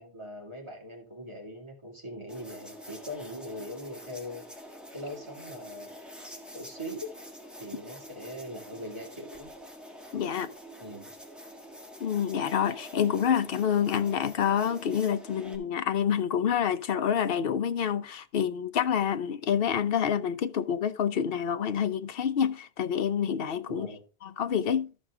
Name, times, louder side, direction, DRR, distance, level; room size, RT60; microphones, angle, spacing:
voice 1, 0.0-6.0 6.5-7.1 7.6-9.5 10.8-11.1 23.7-24.0, equal, 25° right, 2.7 m, -41 dB
sound 1, 2.3-15.6, equal, ahead, 1.5 m, -46 dB
voice 2, 10.1-10.5 12.0-23.9 24.2-24.9, left 8 dB, 65° left, 0.8 m, -27 dB
13.0 x 6.2 x 3.6 m
omnidirectional pair, 1.1 m